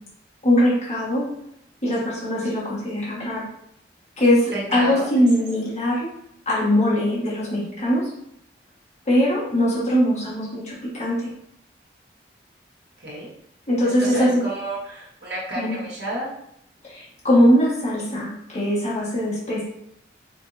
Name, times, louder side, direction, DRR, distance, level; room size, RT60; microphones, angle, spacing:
voice 1, 0.4-1.2 1.8-3.5 4.2-6.1 6.4-8.1 9.1-11.3 13.7-14.4 15.5-15.8 16.8-19.6, equal, 40° left, -8 dB, 1.5 m, -21 dB
voice 2, 4.5-5.1 13.0-13.3 14.0-16.3, right 1 dB, 65° right, -6 dB, 1.6 m, -30 dB
5.3 x 2.7 x 2.7 m, 0.75 s
head